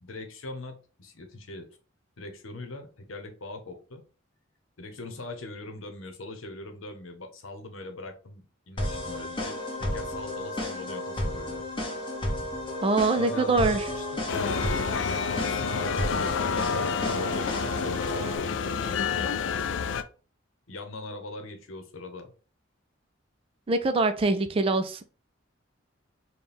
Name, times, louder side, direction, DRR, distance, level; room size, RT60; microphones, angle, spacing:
voice 1, 0.0-1.7 2.2-4.0 4.8-11.6 13.1-14.3 15.3-19.7 20.7-22.3, left 2 dB, 85° left, 0.9 m, -41 dB
sound 1, 8.8-18.4, left 1 dB, 25° left, 1.0 m, -33 dB
voice 2, 12.8-13.8 23.7-25.0, right 3 dB, 30° right, 0.3 m, -24 dB
sound 2, 14.3-20.0, left 5 dB, 65° left, 0.3 m, -29 dB
4.2 x 2.3 x 3.4 m
head